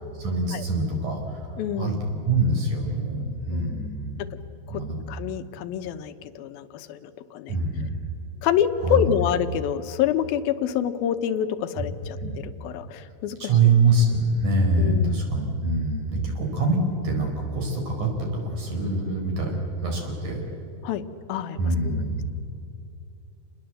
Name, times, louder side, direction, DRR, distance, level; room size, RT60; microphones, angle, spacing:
voice 1, 0.2-1.4 1.8-4.2 4.7-5.0 7.5-7.9 8.8-9.3 11.8-11.9 12.2-12.4 13.4-20.4 21.6-22.3, right 2 dB, 55° right, 1 dB, 5.9 m, -24 dB
voice 2, 1.6-1.9 3.5-3.9 4.7-4.8 5.1-7.5 8.4-12.2 12.6-13.4 14.8-15.3 20.8-21.0 21.3-22.0, left 9 dB, 80° left, 11 dB, 2.7 m, -27 dB
28.5 x 20.5 x 7.9 m, 2.8 s
omnidirectional pair, 4.3 m